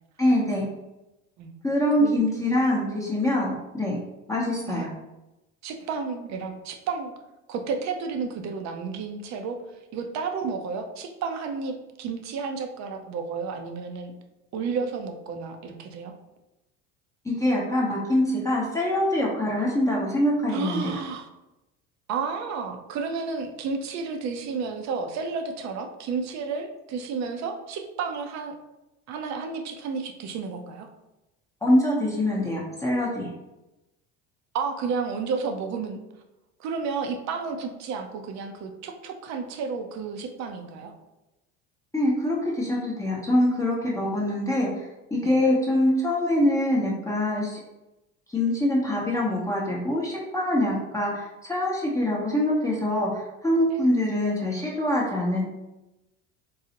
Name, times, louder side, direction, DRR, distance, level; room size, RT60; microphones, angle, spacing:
voice 1, 0.2-0.6 1.6-4.0 4.3-4.9 17.2-21.0 31.6-33.3 41.9-47.6 48.3-55.4, left 1 dB, 10° left, -5 dB, 0.7 m, -24 dB
voice 2, 5.6-7.1 7.5-9.6 9.9-14.1 14.5-16.1 20.5-21.3 22.1-28.6 29.1-30.9 34.5-36.0 36.6-40.9 45.2-45.4, right 5 dB, 50° right, 6 dB, 0.6 m, -31 dB
3.8 x 2.0 x 2.8 m, 0.97 s
supercardioid pair, 95°, 35 cm